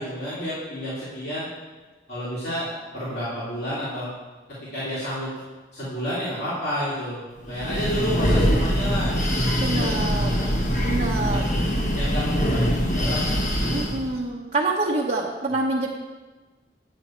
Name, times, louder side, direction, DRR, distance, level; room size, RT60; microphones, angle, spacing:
voice 1, 0.0-1.5 2.1-4.1 4.7-5.3 5.7-10.6 10.9-11.6 11.9-13.3, equal, 60° left, -10 dB, 2.9 m, -31 dB
Breathing, 7.5-14.1, equal, 40° left, 1.1 m, -23 dB
voice 2, 9.6-10.4 10.8-11.5 13.7-15.9, right 2 dB, 40° right, -4 dB, 0.9 m, -26 dB
9.1 x 8.9 x 4.4 m, 1.3 s
head